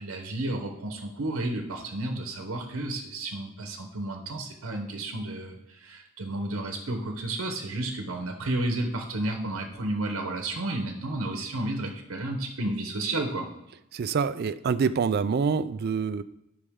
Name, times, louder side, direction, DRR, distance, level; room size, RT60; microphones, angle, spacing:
voice 1, 0.0-13.5, right 2 dB, 75° right, 4 dB, 0.9 m, -32 dB
voice 2, 13.9-16.2, right 5 dB, 45° right, 13 dB, 0.3 m, -26 dB
8.3 x 5.5 x 3.6 m, 0.88 s
head